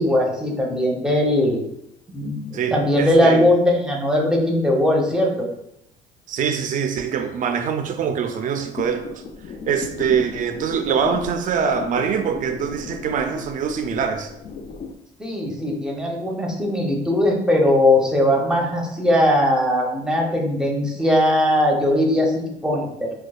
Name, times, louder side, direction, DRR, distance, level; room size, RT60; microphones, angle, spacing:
voice 1, 0.0-1.6 2.1-5.5 15.2-23.1, left 1 dB, 5° right, -1 dB, 0.7 m, -19 dB
voice 2, 2.5-3.5 6.3-9.2 9.7-14.3, right 7 dB, 50° right, 7 dB, 0.4 m, -24 dB
sound 1, 8.7-14.9, left 4 dB, 40° left, 0.4 m, -35 dB
5.0 x 2.2 x 2.3 m, 0.81 s
cardioid pair, 110°, 17 cm